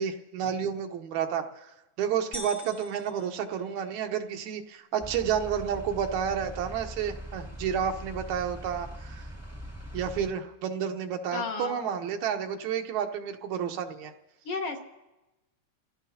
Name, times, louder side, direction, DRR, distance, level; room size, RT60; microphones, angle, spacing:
voice 1, 0.0-1.7 2.0-9.3 9.9-14.1, right 8 dB, 80° right, 5 dB, 2.2 m, -30 dB
sound 1, 2.3-4.3, left 1 dB, 25° left, 1.2 m, -44 dB
sound 2, 5.0-10.3, equal, 10° left, 0.9 m, -42 dB
voice 2, 11.3-11.8 14.4-14.8, left 4 dB, 60° left, 2 dB, 1.8 m, -32 dB
29.0 x 17.0 x 2.7 m, 1.0 s
omnidirectional pair, 3.4 m